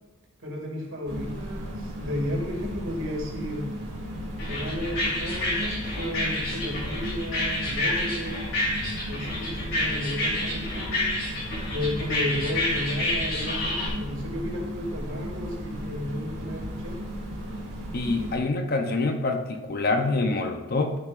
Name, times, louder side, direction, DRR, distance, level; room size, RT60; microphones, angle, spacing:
voice 1, 0.4-3.7 4.5-8.4 9.1-11.1 11.7-17.0, left 1 dB, 60° right, -2 dB, 2.3 m, -33 dB
sound 1, 1.1-18.4, equal, 80° right, 2.3 m, -35 dB
sound 2, 4.4-13.9, left 1 dB, 60° left, 3.0 m, -29 dB
voice 2, 17.9-21.0, left 3 dB, 45° left, 5 dB, 0.7 m, -26 dB
12.0 x 6.9 x 2.5 m, 1.1 s
head